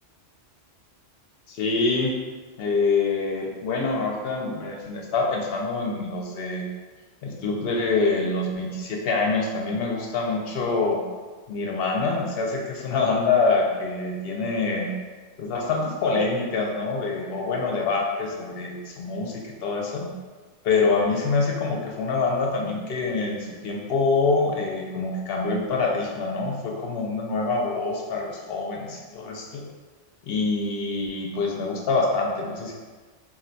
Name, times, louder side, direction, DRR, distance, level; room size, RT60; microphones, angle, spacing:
voice 1, 1.5-2.1 2.6-6.7 7.2-11.0 11.5-14.9 15.4-20.1 20.6-29.6 30.2-32.7, left 3 dB, 65° left, 0 dB, 0.7 m, -25 dB
2.5 x 2.2 x 3.8 m, 1.4 s
omnidirectional pair, 1.2 m